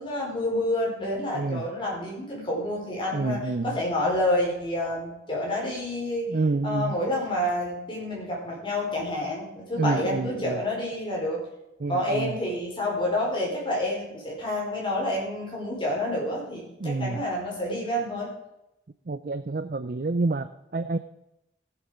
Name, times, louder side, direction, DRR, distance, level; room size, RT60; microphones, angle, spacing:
voice 1, 0.0-6.3 6.6-11.4 11.9-18.3, left 1 dB, 30° left, -3 dB, 5.0 m, -28 dB
voice 2, 3.1-3.8 6.3-6.9 9.8-10.6 11.8-12.4 16.8-17.2 19.1-21.0, right 3 dB, 50° right, 10 dB, 0.5 m, -28 dB
15.0 x 8.1 x 5.1 m, 0.89 s
head